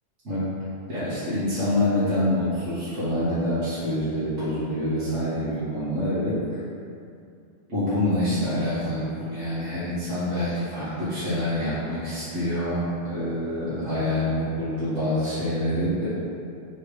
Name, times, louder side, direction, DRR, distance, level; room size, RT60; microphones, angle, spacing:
voice 1, 0.9-6.6 7.7-16.1, left 1 dB, 80° right, -13 dB, 1.4 m, -26 dB
3.4 x 3.2 x 4.7 m, 2.5 s
omnidirectional pair, 1.2 m